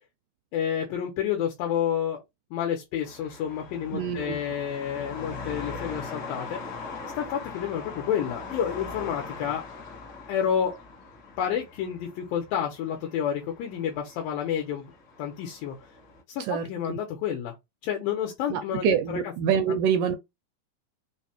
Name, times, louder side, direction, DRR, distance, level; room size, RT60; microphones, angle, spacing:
voice 1, 0.5-2.2 2.5-6.6 7.2-9.6 10.3-10.8 11.4-14.9 15.2-15.7 16.3-17.5 17.8-19.3 19.7-19.8, left 9 dB, 80° left, 2.6 m, -29 dB
sound 1, 3.0-16.2, left 4 dB, 45° left, 1.3 m, -41 dB
voice 2, 3.9-4.4 16.4-17.0 18.5-20.2, right 8 dB, 80° right, 1.9 m, -26 dB
5.7 x 2.2 x 2.9 m
omnidirectional pair, 4.1 m